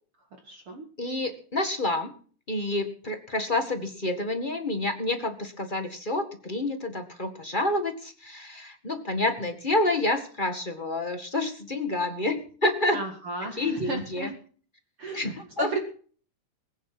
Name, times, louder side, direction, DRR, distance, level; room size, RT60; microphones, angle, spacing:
voice 1, 0.4-0.8 12.9-14.3 15.0-15.3 15.6-15.8, right 2 dB, 45° right, 4 dB, 2.5 m, -33 dB
voice 2, 1.0-2.1 2.5-13.0 13.6-14.3 15.1-15.8, left 2 dB, 25° left, 6 dB, 1.2 m, -28 dB
20.5 x 9.6 x 6.0 m, 0.43 s
omnidirectional pair, 3.6 m